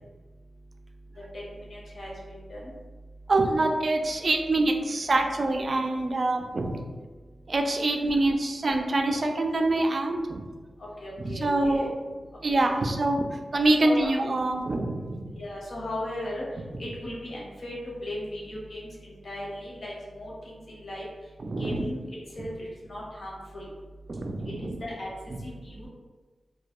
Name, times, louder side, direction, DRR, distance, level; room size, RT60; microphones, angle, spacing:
voice 1, 1.2-2.1 2.5-2.6 10.8-11.9 12.5-12.8 13.8-14.1 15.3-16.4 16.8-17.7 18.0-21.1 21.6-22.0 22.4-23.7 24.6-25.1 25.4-25.9, left 1 dB, 70° left, -5 dB, 0.8 m, -37 dB
voice 2, 3.3-6.8 7.5-10.4 11.2-11.9 12.4-13.3 13.5-15.3 21.4-21.9 24.1-24.8, right 2 dB, 55° right, 3 dB, 0.3 m, -25 dB
2.2 x 2.1 x 2.9 m, 1.4 s
cardioid pair, 55°, 0 cm